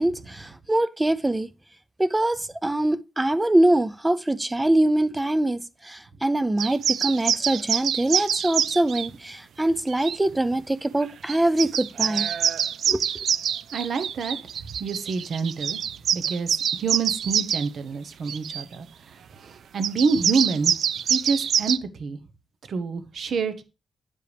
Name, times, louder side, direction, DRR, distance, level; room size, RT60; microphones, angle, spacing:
voice 1, 0.0-1.5 2.0-12.3 12.9-13.0, right 1 dB, 10° right, 0.5 m, -23 dB
sound 1, 6.6-9.1 9.9-10.2 11.0-11.1 11.3-17.7 18.3-18.6 19.8-21.8, right 8 dB, 80° right, 0.4 m, -25 dB
voice 2, 13.7-14.4 14.8-15.8 16.1-20.7 21.1-22.2 22.7-23.6, right 5 dB, 60° right, 1.1 m, -27 dB
9.9 x 7.5 x 3.4 m
wide cardioid pair, 170°, 0 cm